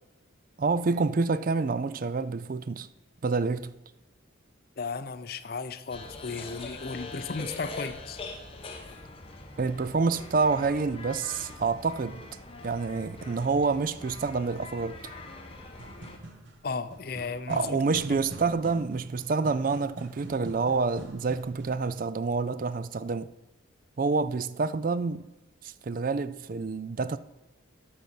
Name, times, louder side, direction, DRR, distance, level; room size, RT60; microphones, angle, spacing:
voice 1, 0.6-2.9 3.2-3.7 9.6-12.2 12.6-15.0 17.5-23.3 24.0-25.3 25.6-27.2, right 4 dB, 45° right, 0.4 m, -28 dB
voice 2, 4.8-8.2 16.6-17.8, left 4 dB, 50° left, 0.6 m, -35 dB
sound 1, 5.9-16.2, left 2 dB, 30° left, 1.1 m, -43 dB
sound 2, 15.8-21.9, right 1 dB, 75° right, 1.6 m, -44 dB
12.0 x 4.1 x 7.6 m
head